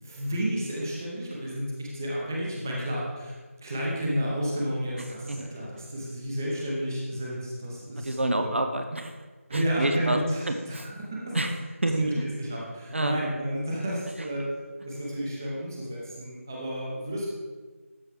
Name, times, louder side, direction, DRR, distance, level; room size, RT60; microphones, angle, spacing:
voice 1, 0.0-3.3 3.6-8.5 9.5-11.4 11.9-14.5 14.8-17.3, equal, 15° right, -4 dB, 0.8 m, -31 dB
voice 2, 8.0-9.2 9.5-10.2 10.5-10.9 11.3-12.1 12.9-13.2 16.6-16.7, right 1 dB, 55° right, 6 dB, 0.7 m, -29 dB
12.5 x 4.3 x 3.4 m, 1.3 s
figure-of-eight pair, 170°, 8 cm